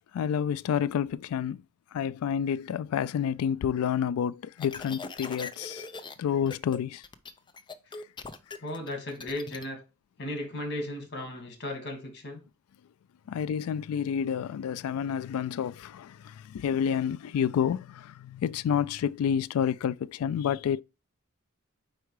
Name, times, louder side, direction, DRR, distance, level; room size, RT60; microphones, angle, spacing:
voice 1, 0.1-1.6 1.9-5.9 6.2-7.0 13.3-20.8, left 8 dB, 85° left, 0.3 m, -29 dB
sound 1, 4.6-6.1 6.5-6.8 7.0-9.6, left 4 dB, 20° left, 0.5 m, -41 dB
voice 2, 8.6-9.8 10.2-12.4, left 1 dB, 55° left, 1.9 m, -36 dB
4.7 x 4.5 x 4.7 m
head